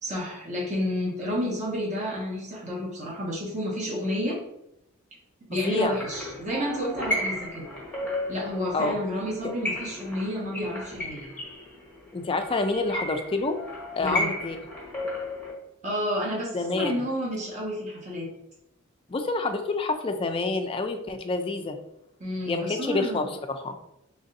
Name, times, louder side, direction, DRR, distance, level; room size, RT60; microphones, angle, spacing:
voice 1, 0.0-4.4 5.5-7.7 8.3-11.3 14.0-14.3 15.8-18.3 22.2-23.2, equal, 35° right, -4 dB, 1.0 m, -30 dB
voice 2, 5.6-5.9 8.7-9.0 12.1-13.5 14.0-14.6 16.5-16.9 19.1-21.8 22.4-23.7, left 3 dB, 25° left, 6 dB, 0.3 m, -27 dB
sound 1, 5.8-15.5, left 1 dB, 5° left, 0.9 m, -34 dB
3.2 x 2.6 x 3.9 m, 0.82 s
head